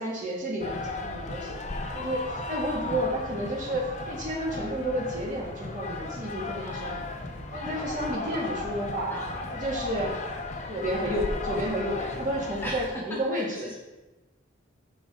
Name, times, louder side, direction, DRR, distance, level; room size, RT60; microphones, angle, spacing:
voice 1, 0.0-1.6 1.9-6.9 7.5-9.1 9.5-10.1 10.7-13.7, equal, 40° right, -3 dB, 2.0 m, -31 dB
sound 1, 0.6-12.9, left 2 dB, 35° left, 0.7 m, -35 dB
voice 2, 2.7-3.0 6.6-7.0 8.1-9.5 9.9-10.2 12.6-13.8, equal, 10° left, -4 dB, 1.4 m, -40 dB
7.6 x 5.9 x 4.3 m, 1.1 s
head